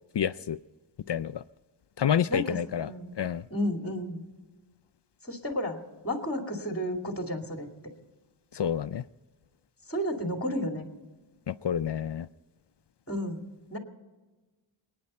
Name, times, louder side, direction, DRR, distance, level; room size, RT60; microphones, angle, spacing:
voice 1, 0.1-0.6 1.1-1.4 2.0-2.9 3.2-3.4 8.5-9.0 11.5-12.3, left 9 dB, 60° left, 15 dB, 0.5 m, -28 dB
voice 2, 2.3-3.1 3.5-4.2 5.2-5.8 6.0-7.7 9.9-10.9 13.1-13.4 13.7-13.8, equal, 30° left, 3 dB, 2.5 m, -32 dB
28.0 x 9.5 x 4.3 m, 1.3 s
wide cardioid pair, 45°, 48 cm